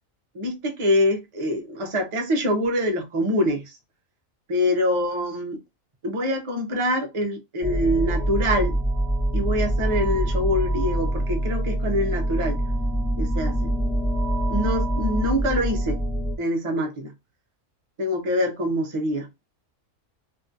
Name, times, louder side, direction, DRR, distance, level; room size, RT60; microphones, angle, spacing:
voice 1, 0.3-3.8 4.5-5.6 6.0-8.8 9.3-12.6 13.2-13.7 14.5-16.0 16.4-17.1 18.0-19.3, left 1 dB, 35° right, 0.5 m, -25 dB
sound 1, 7.6-16.4, right 1 dB, 5° left, 0.6 m, -25 dB
2.9 x 2.6 x 2.5 m
omnidirectional pair, 1.4 m